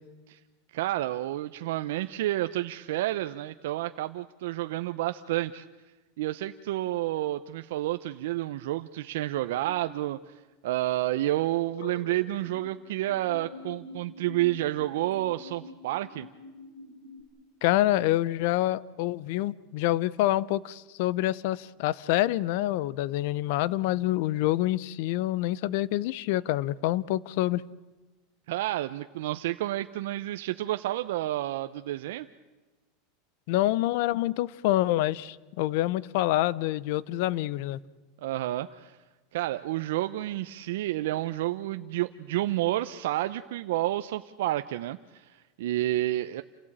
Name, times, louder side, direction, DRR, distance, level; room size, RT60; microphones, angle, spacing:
voice 1, 0.7-5.6 6.2-16.3 28.5-32.3 38.2-39.0 39.3-46.4, right 15 dB, 75° right, 0.7 m, -30 dB
sound 1, 9.4-9.9 11.7-12.7 13.1-17.2, left 3 dB, 75° left, 4.0 m, -46 dB
voice 2, 17.6-27.6 33.5-37.8, left 15 dB, 60° left, 0.7 m, -27 dB
28.0 x 16.5 x 8.8 m
supercardioid pair, 160°, 0 cm